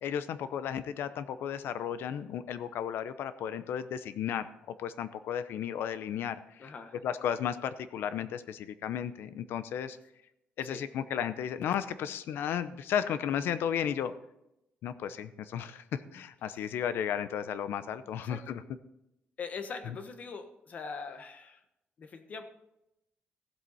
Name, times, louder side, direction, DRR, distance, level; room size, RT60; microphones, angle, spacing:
voice 1, 0.0-6.7 7.0-10.0 10.6-14.1 14.8-15.8 16.1-18.6, left 9 dB, 80° left, 13 dB, 0.7 m, -34 dB
voice 2, 6.6-7.0 10.6-10.9 16.6-16.7 18.2-18.6 19.4-21.6 22.0-22.4, left 5 dB, 40° left, 7 dB, 1.2 m, -42 dB
15.5 x 7.8 x 4.2 m, 0.87 s
cardioid pair, 160°, 4 cm